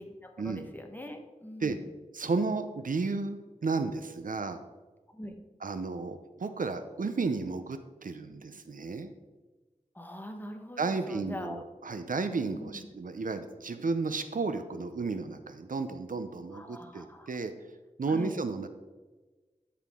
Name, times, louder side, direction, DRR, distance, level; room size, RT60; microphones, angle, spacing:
voice 1, 0.0-1.9 5.1-5.3 9.9-11.6 12.5-12.9 16.5-17.3 18.0-18.4, left 1 dB, 15° left, 4 dB, 1.2 m, -43 dB
voice 2, 2.1-4.6 5.6-9.1 10.8-17.5 18.0-18.7, right 4 dB, 75° right, 10 dB, 0.6 m, -33 dB
12.5 x 5.9 x 3.6 m, 1.3 s
wide cardioid pair, 65°, 14 cm